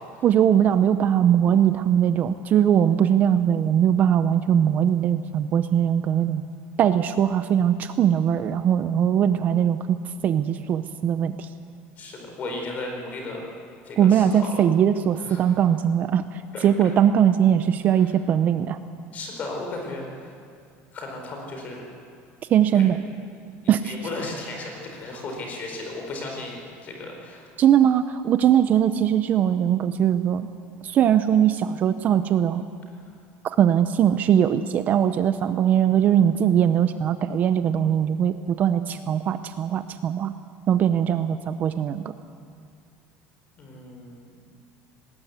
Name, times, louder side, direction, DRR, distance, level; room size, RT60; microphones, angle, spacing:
voice 1, 0.2-6.4 6.8-10.0 10.2-11.5 14.0-18.8 22.5-23.0 23.7-23.9 27.6-30.5 30.8-32.6 33.6-40.3 40.7-42.1, right 9 dB, 30° right, 11 dB, 0.6 m, -20 dB
voice 2, 12.0-13.4 13.8-14.6 15.2-15.4 16.5-16.7 17.9-18.0 19.1-20.3 20.9-21.9 22.7-22.8 23.8-27.5 43.6-44.4, left 2 dB, 30° left, 1 dB, 4.5 m, -35 dB
19.0 x 18.5 x 8.1 m, 2.3 s
cardioid pair, 170°, 5 cm